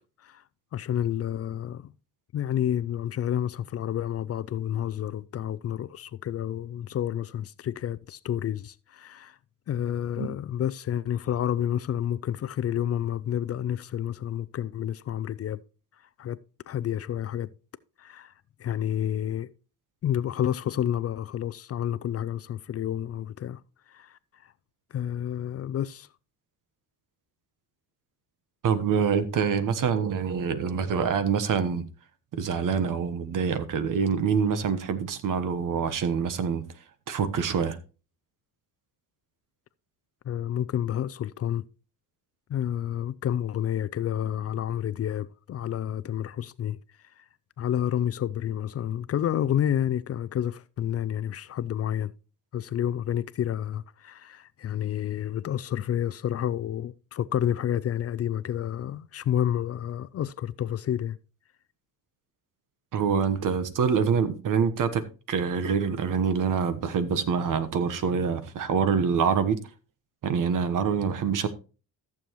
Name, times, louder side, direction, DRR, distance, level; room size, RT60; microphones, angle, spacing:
voice 1, 0.7-1.9 2.3-9.4 9.7-15.6 16.2-16.4 16.7-17.5 18.0-18.3 18.6-19.5 20.0-23.6 23.9-24.5 24.9-26.1 40.2-41.7 42.5-46.8 47.2-47.3 47.6-52.1 52.5-61.2, left 10 dB, 45° left, 0.5 m, -29 dB
voice 2, 28.6-31.9 32.3-36.6 37.1-37.8 62.9-69.6 70.2-71.5, right 6 dB, 60° right, 1.2 m, -25 dB
14.0 x 7.1 x 3.0 m
cardioid pair, 100°, 36 cm